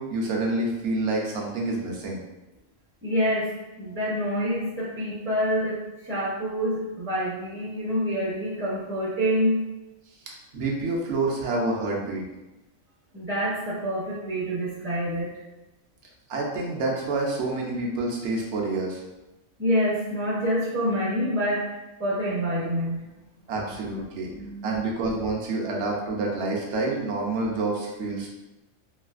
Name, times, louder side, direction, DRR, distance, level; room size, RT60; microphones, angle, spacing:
voice 1, 0.0-2.2 10.3-12.2 16.3-19.0 23.5-24.3 24.6-28.3, right 2 dB, 65° right, -1 dB, 0.9 m, -28 dB
voice 2, 3.0-3.5 3.8-5.8 6.0-9.6 10.5-10.6 13.1-15.3 19.6-21.7 22.0-23.0 24.3-24.8, equal, 15° right, -8 dB, 0.4 m, -27 dB
3.2 x 2.7 x 2.4 m, 1.0 s
omnidirectional pair, 1.4 m